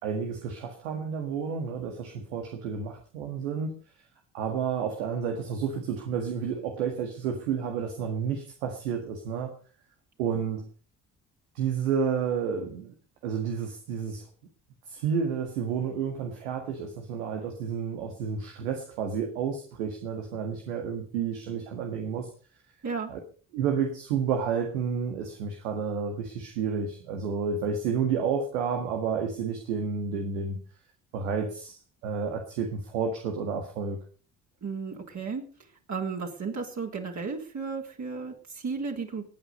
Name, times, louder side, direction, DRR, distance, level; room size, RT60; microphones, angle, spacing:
voice 1, 0.0-3.8 4.3-9.5 10.2-10.7 11.6-12.9 13.2-14.3 14.9-22.3 23.1-23.2 23.5-30.6 31.1-34.0, right 6 dB, 90° right, 4 dB, 1.9 m, -30 dB
voice 2, 34.6-35.4 35.9-39.2, right 5 dB, 45° right, -1 dB, 3.7 m, -34 dB
20.5 x 8.8 x 5.4 m, 0.40 s
hypercardioid pair, 55°, 40 cm